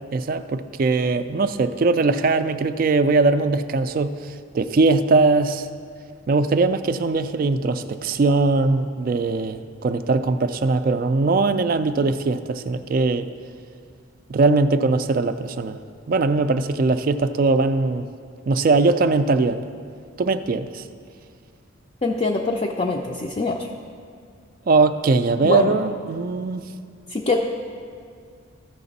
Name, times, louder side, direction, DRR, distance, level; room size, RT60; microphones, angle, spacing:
voice 1, 0.1-5.7 6.3-13.3 14.3-15.8 16.1-18.1 18.5-19.6 20.2-20.8 24.7-26.6, right 3 dB, 45° right, 11 dB, 0.3 m, -20 dB
voice 2, 22.0-23.7 25.4-25.8 27.1-27.4, left 3 dB, 30° left, 0 dB, 0.4 m, -23 dB
14.0 x 5.8 x 4.0 m, 2.3 s
head